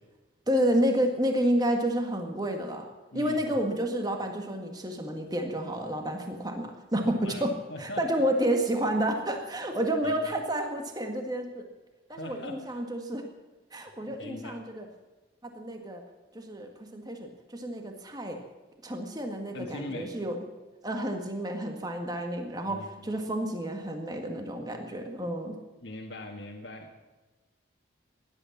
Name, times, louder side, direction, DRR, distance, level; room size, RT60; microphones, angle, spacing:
voice 1, 0.5-2.9 3.1-11.6 12.1-13.2 13.7-14.9 15.4-16.0 16.3-18.4 18.8-20.4 20.8-25.6, right 1 dB, 20° right, 3 dB, 1.7 m, -30 dB
voice 2, 3.1-3.4 7.2-7.4 7.7-8.0 10.0-10.3 12.1-12.7 13.7-14.6 19.5-20.1 22.7-23.1 25.8-27.0, left 1 dB, 70° left, -1 dB, 1.7 m, -41 dB
17.5 x 11.5 x 7.2 m, 1.2 s
head